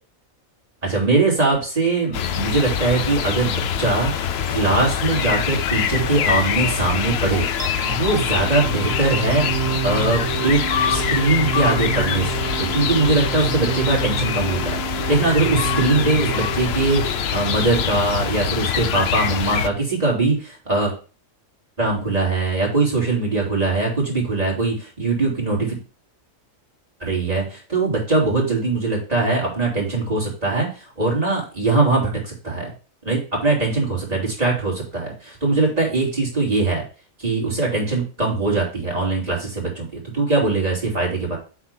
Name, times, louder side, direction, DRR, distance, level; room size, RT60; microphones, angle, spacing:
voice 1, 0.8-4.1 4.5-9.4 9.8-12.3 12.6-20.9 21.8-25.8 27.0-30.7 31.0-32.7 33.0-36.8 37.2-39.9 40.1-41.4, right 3 dB, 30° right, -3 dB, 3.1 m, -21 dB
sound 1, 2.1-19.7, left 8 dB, 60° left, 0.7 m, -24 dB
sound 2, 7.6-18.5, right 10 dB, 80° right, 1.1 m, -29 dB
8.2 x 3.6 x 5.8 m, 0.36 s
omnidirectional pair, 1.4 m